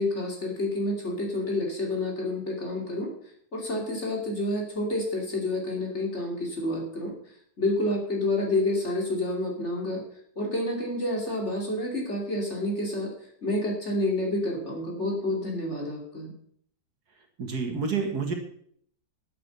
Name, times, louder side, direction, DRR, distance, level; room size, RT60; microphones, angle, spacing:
voice 1, 0.0-3.1 3.5-7.1 7.6-10.0 10.4-13.1 13.4-16.3, left 1 dB, 35° left, 0 dB, 3.3 m, -29 dB
voice 2, 17.4-18.3, right 5 dB, 60° right, 4 dB, 2.3 m, -28 dB
11.0 x 8.6 x 6.9 m, 0.64 s
omnidirectional pair, 2.0 m